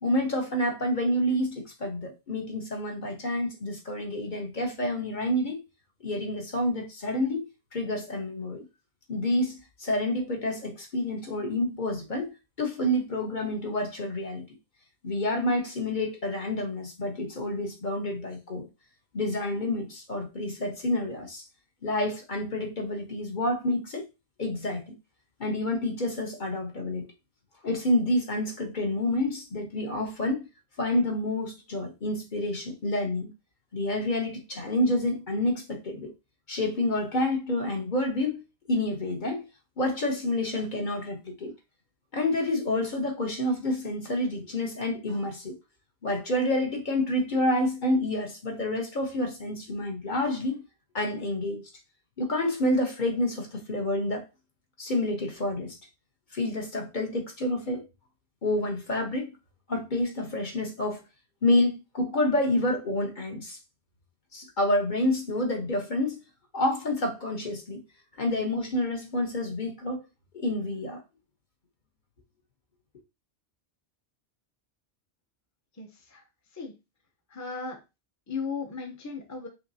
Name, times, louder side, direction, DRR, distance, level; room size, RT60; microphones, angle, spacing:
voice 1, 0.0-5.6 6.0-8.6 9.1-14.4 15.0-18.7 19.1-21.4 21.8-24.0 24.4-24.9 25.4-27.1 27.6-30.4 30.8-33.3 33.7-36.1 36.5-38.4 38.7-39.5 39.8-41.5 42.1-45.6 46.0-50.6 50.9-51.7 52.2-54.2 54.8-55.8 56.3-57.9 58.4-59.3 59.7-61.0 61.4-63.6 64.3-66.2 66.5-67.8 68.2-70.0 70.3-71.0, left 1 dB, 45° left, 1.1 m, -28 dB
voice 2, 75.8-76.3 76.5-76.7 77.3-77.8 78.3-79.5, left 5 dB, 20° left, 0.7 m, -36 dB
5.7 x 2.8 x 2.7 m
omnidirectional pair, 1.2 m